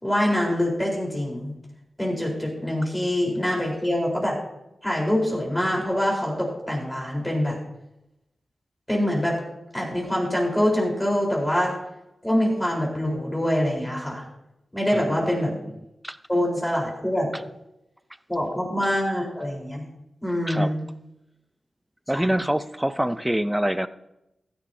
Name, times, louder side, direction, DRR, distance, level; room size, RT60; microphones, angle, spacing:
voice 1, 0.0-1.5 2.0-4.4 4.8-7.6 8.9-9.4 9.7-11.7 12.2-14.2 14.7-15.5 16.3-17.3 18.3-19.8 20.2-20.8 22.1-22.3, left 1 dB, 10° left, -2 dB, 4.0 m, -24 dB
voice 2, 14.9-15.7 16.0-16.2 20.5-20.7 22.1-23.9, right 1 dB, 10° right, 13 dB, 0.5 m, -26 dB
15.5 x 11.0 x 2.7 m, 0.88 s
wide cardioid pair, 85°, 0 cm